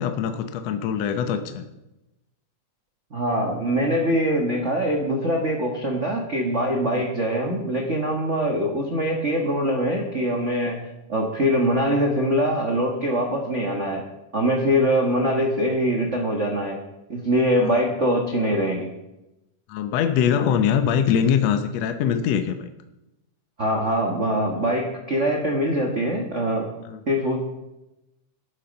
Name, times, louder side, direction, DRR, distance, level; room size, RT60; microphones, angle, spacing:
voice 1, 0.0-1.6 6.9-7.0 17.6-17.7 19.7-22.7 26.8-27.0, left 8 dB, 70° left, 8 dB, 1.7 m, -23 dB
voice 2, 3.1-10.8 11.1-14.0 14.3-16.8 17.1-18.9 23.6-26.7 27.1-27.4, equal, 70° right, 1 dB, 0.6 m, -23 dB
13.0 x 10.5 x 5.3 m, 0.95 s
omnidirectional pair, 3.7 m